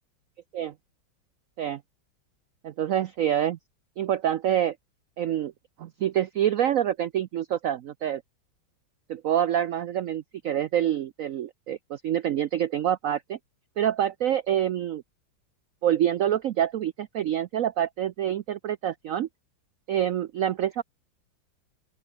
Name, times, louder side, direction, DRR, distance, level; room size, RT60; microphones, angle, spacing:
voice 1, 2.6-3.6 4.0-4.7 5.2-5.5 5.8-8.2 9.1-13.4 13.8-15.0 15.8-19.3 19.9-20.8, right 10 dB, 90° right, 0.7 m, -26 dB
open air
omnidirectional pair, 2.1 m